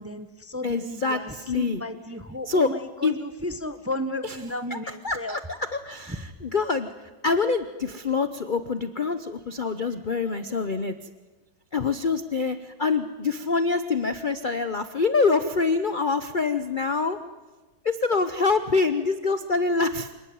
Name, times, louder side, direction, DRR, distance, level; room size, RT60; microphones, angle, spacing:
voice 1, 0.0-5.4, left 1 dB, 10° right, 9 dB, 0.6 m, -34 dB
voice 2, 0.6-1.8 2.4-2.7 3.0-3.1 4.2-6.9 7.2-10.9 11.7-17.2 17.8-20.1, left 4 dB, 65° left, 10 dB, 0.4 m, -25 dB
27.0 x 19.0 x 9.4 m, 1.3 s
omnidirectional pair, 2.2 m